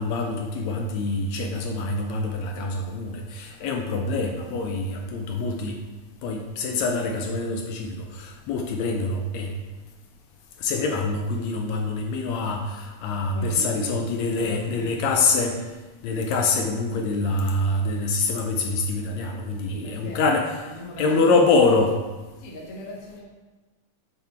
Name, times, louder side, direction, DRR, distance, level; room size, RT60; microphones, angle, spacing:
voice 1, 0.0-5.8 6.2-9.6 10.6-15.6 16.0-20.5 21.0-22.0, left 3 dB, 75° left, 3 dB, 1.8 m, -25 dB
voice 2, 13.3-14.0 14.4-15.0 19.7-20.2 20.6-21.4 22.4-23.2, left 1 dB, 45° left, -3 dB, 1.1 m, -38 dB
7.3 x 4.1 x 4.4 m, 1.2 s
omnidirectional pair, 3.3 m